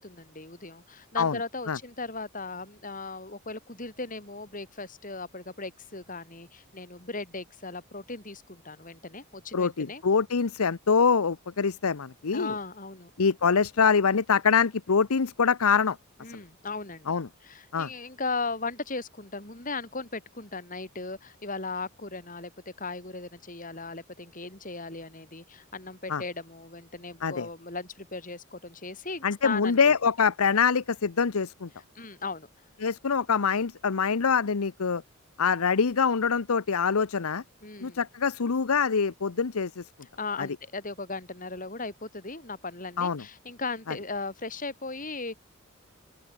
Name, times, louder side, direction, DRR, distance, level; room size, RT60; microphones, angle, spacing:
voice 1, 0.0-10.0 12.3-13.1 16.2-22.5 22.8-29.9 31.9-32.5 37.6-38.0 40.2-45.4, left 3 dB, 40° left, 4.6 m, -37 dB
voice 2, 9.5-12.5 13.2-16.0 17.1-17.3 17.7-17.9 26.1-26.2 27.2-27.5 29.2-31.7 32.8-35.0 35.4-37.4 37.8-39.8 40.4-40.5 43.0-43.2, left 5 dB, 85° left, 0.8 m, -24 dB
open air
head